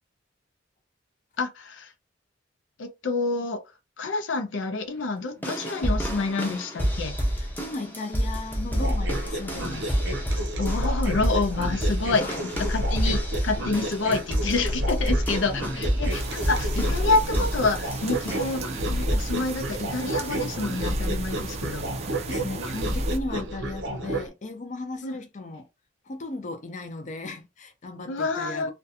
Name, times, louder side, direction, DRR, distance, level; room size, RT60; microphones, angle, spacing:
voice 1, 1.4-1.9 2.8-3.6 4.0-7.2 10.3-21.9 25.0-25.2 28.1-28.7, left 3 dB, 90° left, 0.5 m, -28 dB
sound 1, 5.4-18.6 19.1-19.4 20.2-20.3, equal, 10° left, 0.7 m, -29 dB
voice 2, 7.4-9.9 12.2-12.4 22.3-25.7 26.1-28.7, left 2 dB, 40° left, 0.5 m, -36 dB
sound 2, 8.7-24.3, equal, 80° right, 0.6 m, -30 dB
sound 3, 16.1-23.2, right 4 dB, 35° right, 0.4 m, -37 dB
2.5 x 2.2 x 2.7 m
head